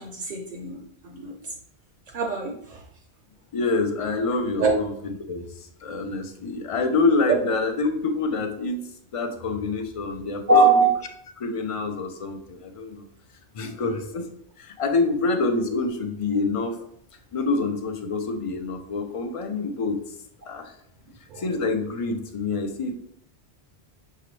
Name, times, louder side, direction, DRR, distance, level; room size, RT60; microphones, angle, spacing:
voice 1, 0.0-1.3 2.1-2.8 4.6-4.7 7.3-7.4 10.5-10.9 13.6-13.7 21.3-21.4, right 3 dB, 50° right, 1 dB, 0.7 m, -22 dB
voice 2, 3.5-10.7 11.4-13.1 13.5-14.3 14.6-16.9 17.3-20.0 20.5-20.7 21.4-23.0, left 3 dB, 45° left, 5 dB, 0.4 m, -27 dB
5.8 x 2.8 x 3.1 m, 0.67 s
omnidirectional pair, 1.1 m